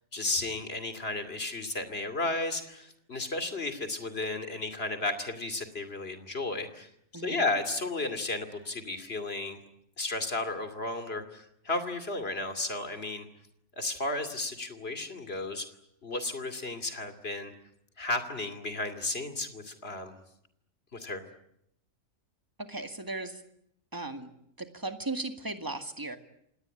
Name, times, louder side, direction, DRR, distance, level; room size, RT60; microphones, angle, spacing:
voice 1, 0.1-9.6 10.0-13.3 13.8-15.6 16.0-17.5 18.0-20.1 20.9-21.2, left 2 dB, 50° left, 8 dB, 2.9 m, -33 dB
voice 2, 7.1-7.5 22.6-23.4 23.9-24.3 24.6-26.2, right 2 dB, 15° right, 7 dB, 2.0 m, -36 dB
27.5 x 18.5 x 9.9 m, 0.75 s
omnidirectional pair, 1.3 m